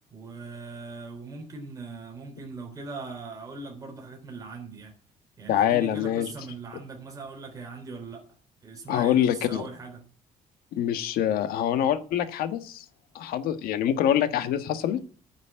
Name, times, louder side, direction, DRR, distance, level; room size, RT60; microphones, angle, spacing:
voice 1, 0.1-4.9 5.4-8.2 8.6-10.0, right 3 dB, 25° right, 1 dB, 3.3 m, -40 dB
voice 2, 5.5-6.3 8.9-9.6 10.7-12.8 13.1-15.0, left 10 dB, 90° left, 10 dB, 1.5 m, -25 dB
9.6 x 7.4 x 8.5 m, 0.40 s
cardioid pair, 170°, 15 cm